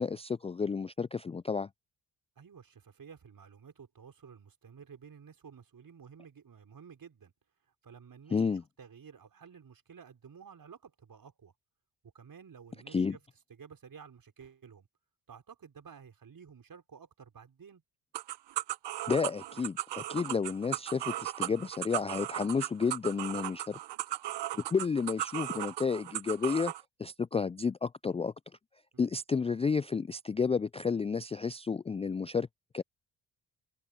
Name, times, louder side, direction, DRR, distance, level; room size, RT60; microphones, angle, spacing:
voice 1, 0.0-1.7 8.3-8.6 12.9-13.2 19.1-23.8 24.5-26.7 27.0-28.3 29.0-32.5 32.7-32.8, left 5 dB, 15° left, 0.4 m, -31 dB
voice 2, 2.4-7.3 7.8-8.4 8.8-11.5 12.1-13.2 13.5-14.9 15.3-17.8 28.9-29.1, right 6 dB, 50° right, 6.0 m, -52 dB
sound 1, 18.1-26.8, right 14 dB, 65° right, 1.3 m, -37 dB
open air
hypercardioid pair, 45°, 44 cm